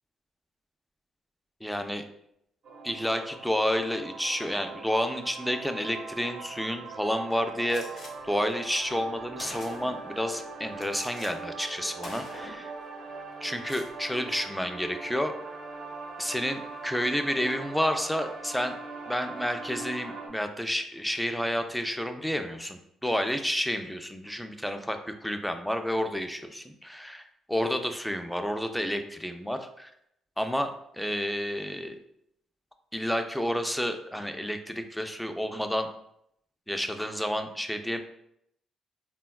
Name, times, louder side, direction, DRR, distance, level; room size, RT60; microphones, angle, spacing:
voice 1, 1.6-2.0 2.8-12.7 13.4-15.3 16.2-18.7 19.1-29.9 30.4-32.0 32.9-35.9 36.7-38.0, equal, 5° left, 7 dB, 0.3 m, -30 dB
sound 1, 2.6-20.3, right 4 dB, 75° right, 0.8 m, -41 dB
Gunshot gunfire, 7.7-8.1 8.9-9.0 9.4-10.1 10.8-11.3 11.6-11.8 12.0-12.7 13.5-13.9, left 2 dB, 70° left, 0.8 m, -44 dB
3.5 x 2.2 x 2.2 m, 0.75 s
cardioid pair, 90°, 0 cm